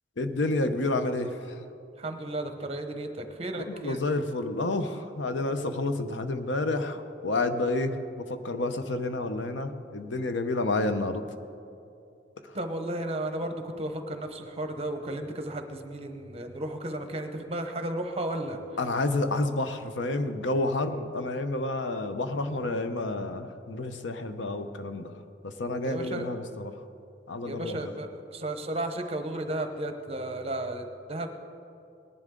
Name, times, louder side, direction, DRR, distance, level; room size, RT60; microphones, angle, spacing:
voice 1, 0.2-1.6 3.6-11.2 18.8-25.2 25.4-26.7 27.3-27.9, left 2 dB, 80° left, 8 dB, 0.8 m, -30 dB
voice 2, 2.0-4.0 12.5-18.6 25.8-26.3 27.4-31.4, right 1 dB, 35° right, 6 dB, 1.0 m, -34 dB
19.0 x 11.0 x 3.8 m, 2.6 s
head